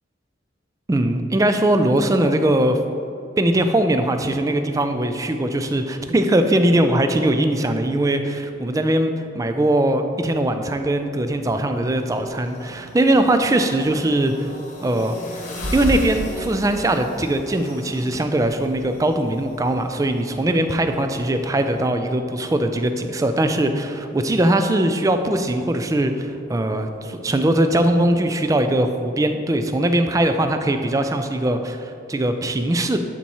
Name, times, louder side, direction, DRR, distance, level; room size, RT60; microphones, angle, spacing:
voice 1, 0.9-2.8 3.4-14.5 14.8-15.2 15.7-33.0, right 1 dB, 15° right, 7 dB, 0.3 m, -20 dB
sound 1, 11.8-21.8, equal, 35° left, 1.0 m, -35 dB
11.5 x 4.2 x 3.0 m, 2.8 s
head